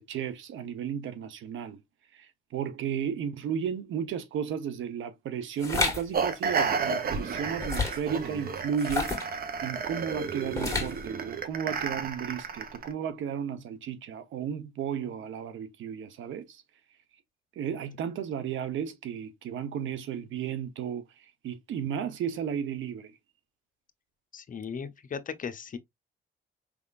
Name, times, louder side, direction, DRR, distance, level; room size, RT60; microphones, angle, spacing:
voice 1, 0.0-1.8 2.2-9.1 9.6-16.6 17.6-21.0 21.4-23.1, right 8 dB, 75° right, 0.9 m, -34 dB
sound 1, 5.6-6.0 7.6-8.1 8.8-9.3 10.5-11.0, left 3 dB, 15° left, 1.9 m, -29 dB
sound 2, 6.1-12.9, right 5 dB, 50° right, 0.9 m, -32 dB
voice 2, 24.3-25.8, left 6 dB, 40° left, 0.7 m, -37 dB
5.2 x 3.5 x 2.5 m
cardioid pair, 90°, 20 cm